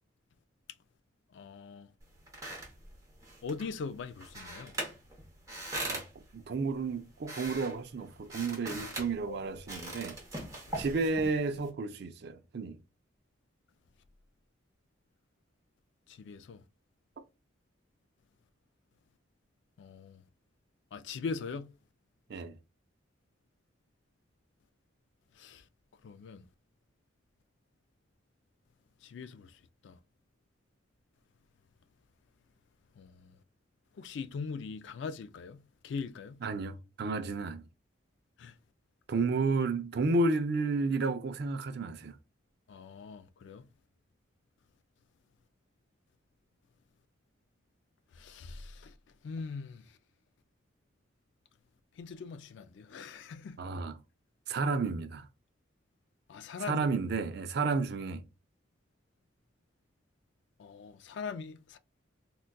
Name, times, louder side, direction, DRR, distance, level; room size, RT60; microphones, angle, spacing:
voice 1, 1.3-1.9 3.4-4.7 9.3-9.6 10.7-10.8 16.1-16.6 19.8-20.2 20.9-21.7 25.4-25.6 26.0-26.4 29.0-29.5 29.8-30.0 33.0-33.3 34.0-36.4 38.4-38.5 42.7-43.6 48.2-48.9 49.2-49.8 52.0-53.6 56.3-56.9 60.6-61.8, left 5 dB, 70° left, 0.3 m, -41 dB
sound 1, 2.0-11.7, right 1 dB, 15° right, 0.8 m, -42 dB
voice 2, 6.3-10.2 10.8-12.8 22.3-22.6 36.4-37.6 39.1-42.2 53.6-54.0 54.5-55.3 56.6-58.2, right 3 dB, 55° right, 0.4 m, -32 dB
3.8 x 2.3 x 2.2 m
head